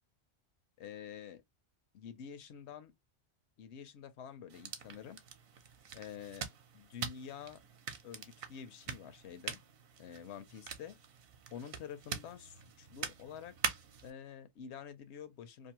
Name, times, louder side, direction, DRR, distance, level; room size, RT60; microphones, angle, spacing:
voice 1, 0.8-1.4 1.9-2.9 3.6-5.2 5.9-6.5 6.7-7.6 8.0-9.6 10.0-11.0 11.5-13.5 14.0-15.7, left 8 dB, 80° left, 0.9 m, -48 dB
sound 1, 4.5-14.1, right 6 dB, 60° right, 0.8 m, -44 dB
2.6 x 2.5 x 2.8 m
omnidirectional pair, 1.1 m